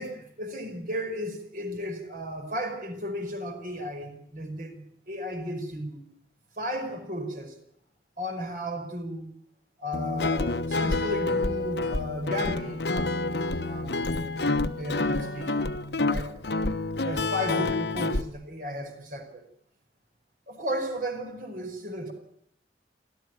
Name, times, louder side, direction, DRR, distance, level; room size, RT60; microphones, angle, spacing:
voice 1, 0.0-6.1 6.6-7.6 8.2-9.3 9.8-15.7 16.1-16.3 17.0-19.5 20.5-22.1, equal, 50° right, 6 dB, 5.1 m, -34 dB
Guitar, 9.9-18.2, left 3 dB, 70° left, 1.1 m, -28 dB
29.0 x 13.5 x 9.2 m, 0.72 s
head